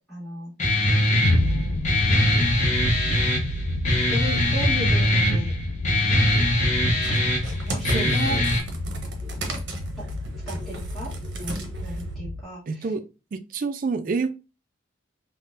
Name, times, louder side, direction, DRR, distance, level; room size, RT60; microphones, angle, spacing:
voice 1, 0.1-0.5 1.3-1.8 4.1-5.5 7.7-8.4 10.0-10.1 10.5-11.1 11.4-12.9, equal, ahead, 1.1 m, -35 dB
Guitar, 0.6-8.6, left 1 dB, 40° left, 0.7 m, -22 dB
sound 1, 1.2-12.4, left 1 dB, 55° left, 0.3 m, -30 dB
sound 2, 7.0-12.1, right 2 dB, 70° right, 0.7 m, -37 dB
voice 2, 7.9-8.4 12.7-13.0 13.3-14.3, right 4 dB, 45° right, 0.3 m, -28 dB
3.6 x 2.1 x 2.5 m
head